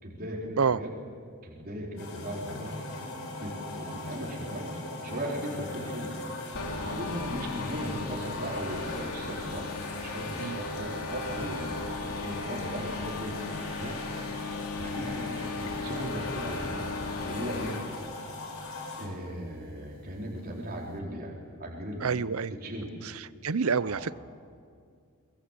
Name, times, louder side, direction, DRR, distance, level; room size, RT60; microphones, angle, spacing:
voice 1, 0.0-0.9 1.4-2.8 3.4-6.4 6.7-11.9 12.2-14.0 14.8-16.9 17.2-17.7 19.0-21.3 21.6-22.1 22.5-22.9 23.8-24.1, equal, 45° right, -3 dB, 4.5 m, -37 dB
sound 1, 2.0-19.1, left 2 dB, 65° left, 5.3 m, -40 dB
sound 2, 6.5-17.9, left 3 dB, 85° left, 2.9 m, -36 dB
voice 2, 22.0-22.5 23.0-24.1, right 5 dB, 70° right, 17 dB, 0.7 m, -28 dB
23.5 x 22.0 x 8.3 m, 2.2 s
head